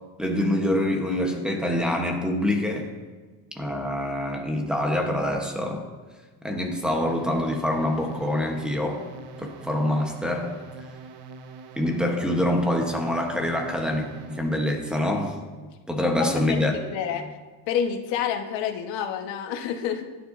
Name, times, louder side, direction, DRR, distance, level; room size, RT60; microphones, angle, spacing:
voice 1, 0.2-2.9 3.6-5.9 6.4-9.0 9.4-10.6 11.8-15.4 15.9-16.8, left 1 dB, ahead, 2 dB, 0.9 m, -25 dB
sound 1, 7.1-14.6, right 4 dB, 90° right, 1.0 m, -43 dB
voice 2, 16.0-17.3 17.7-20.0, left 8 dB, 80° left, 5 dB, 1.2 m, -29 dB
15.5 x 9.9 x 2.5 m, 1.3 s
cardioid pair, 170°, 43 cm